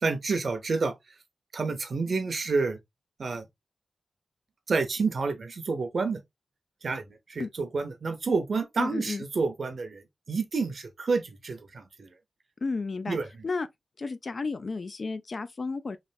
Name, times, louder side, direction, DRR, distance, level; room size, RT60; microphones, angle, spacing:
voice 1, 0.0-0.9 1.5-2.8 3.2-3.4 4.7-6.2 6.8-12.1 13.1-13.3, right 4 dB, 60° right, 0.7 m, -29 dB
voice 2, 8.8-9.2 12.6-13.2 13.4-13.7 14.0-16.0, left 4 dB, 50° left, 0.4 m, -32 dB
3.2 x 2.5 x 2.5 m
wide cardioid pair, 115°, 0 cm